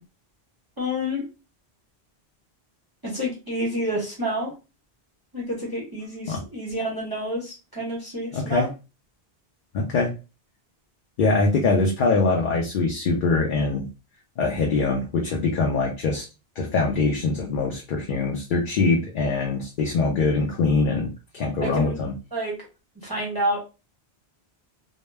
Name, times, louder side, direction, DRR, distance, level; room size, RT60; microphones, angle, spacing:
voice 1, 0.8-1.2 3.1-4.5 5.3-8.7 21.6-22.0 22.3-22.5 23.0-23.6, equal, 25° right, -3 dB, 0.7 m, -28 dB
voice 2, 8.3-8.7 9.7-10.1 11.2-13.9 14.4-16.3 16.6-22.1, left 3 dB, 60° left, 1 dB, 0.6 m, -23 dB
2.1 x 2.1 x 3.2 m, 0.30 s
omnidirectional pair, 1.0 m